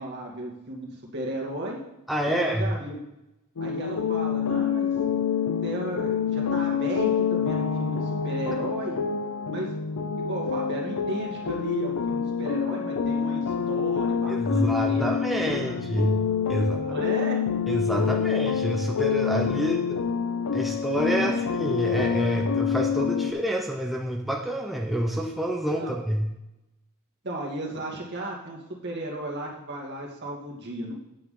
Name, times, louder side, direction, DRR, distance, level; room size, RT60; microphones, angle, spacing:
voice 1, 0.0-1.8 2.2-3.0 3.6-4.9 5.6-9.0 9.5-9.7 10.2-15.1 15.5-15.9 16.7-17.4 19.6-19.7 21.1-21.4 25.8-25.9 27.2-30.9, right 1 dB, 55° right, -2 dB, 2.3 m, -35 dB
voice 2, 2.1-2.7 14.3-16.2 16.5-17.0 17.7-20.0 20.5-26.3, equal, ahead, -1 dB, 0.7 m, -27 dB
sound 1, 3.6-23.3, left 7 dB, 80° left, 0.6 m, -27 dB
9.3 x 8.7 x 3.9 m, 0.92 s
head